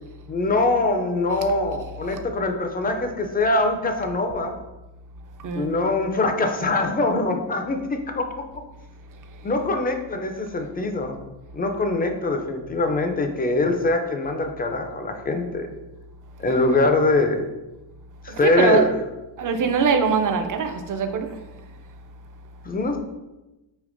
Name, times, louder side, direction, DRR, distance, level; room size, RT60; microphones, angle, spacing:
voice 1, 0.3-4.5 5.5-8.6 9.4-11.2 11.5-15.7 16.4-17.4 18.2-18.9 22.6-23.0, left 2 dB, 20° left, 0.4 m, -23 dB
voice 2, 18.3-18.9 19.4-21.4, right 5 dB, 45° right, 0.5 m, -22 dB
5.1 x 2.9 x 2.5 m
cardioid pair, 105°, 47 cm